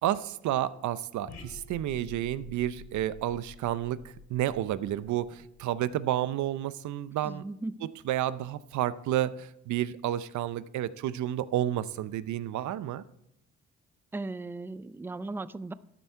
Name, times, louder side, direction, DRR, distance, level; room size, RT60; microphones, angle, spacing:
voice 1, 0.0-7.5 7.8-13.0, right 12 dB, 70° right, 16 dB, 0.6 m, -31 dB
sound 1, 1.3-5.9, left 4 dB, 65° left, 2.5 m, -49 dB
voice 2, 7.2-7.7 14.1-15.7, right 2 dB, 10° right, 16 dB, 0.3 m, -37 dB
12.0 x 8.3 x 4.5 m, 0.78 s
cardioid pair, 90°, 30 cm